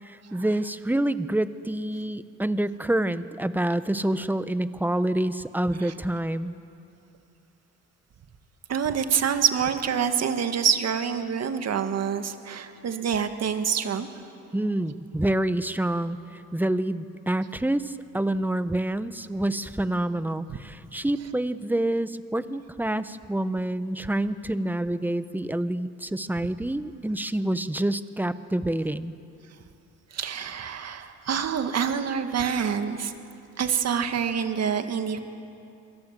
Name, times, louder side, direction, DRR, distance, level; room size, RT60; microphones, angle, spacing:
voice 1, 0.0-6.5 14.5-29.1, right 1 dB, 5° right, 13 dB, 1.0 m, -27 dB
voice 2, 8.7-14.1 30.1-33.1 33.6-35.2, right 7 dB, 60° right, 7 dB, 2.0 m, -26 dB
27.5 x 23.0 x 7.6 m, 2.6 s
cardioid pair, 90°, 30 cm